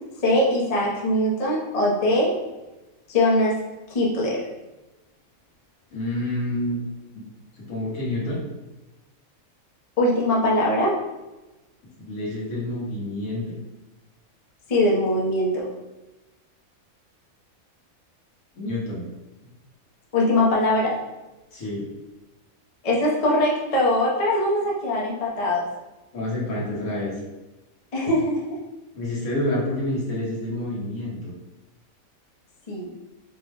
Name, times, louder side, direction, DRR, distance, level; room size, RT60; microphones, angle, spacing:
voice 1, 0.2-2.4 3.1-3.6 3.9-4.4 10.0-11.0 14.7-15.7 20.1-21.0 22.8-25.7 27.9-28.6 32.7-32.9, left 1 dB, 35° left, -4 dB, 0.6 m, -21 dB
voice 2, 5.9-6.8 7.1-7.2 7.5-8.4 12.0-13.6 18.5-19.0 21.5-21.8 26.1-27.1 28.9-31.3, left 1 dB, 70° left, -5 dB, 1.5 m, -28 dB
4.5 x 2.1 x 3.2 m, 1.1 s
omnidirectional pair, 1.5 m